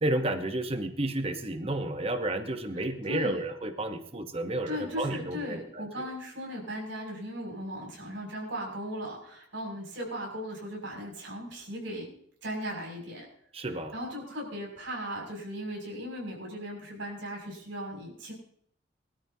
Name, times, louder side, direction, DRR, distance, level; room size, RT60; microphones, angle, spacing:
voice 1, 0.0-5.8 13.5-13.9, right 1 dB, 30° right, 7 dB, 1.1 m, -31 dB
voice 2, 3.1-3.4 4.7-12.1 12.4-13.3 13.9-18.3, equal, 85° right, -1 dB, 6.6 m, -37 dB
23.5 x 13.0 x 2.8 m, 0.67 s
head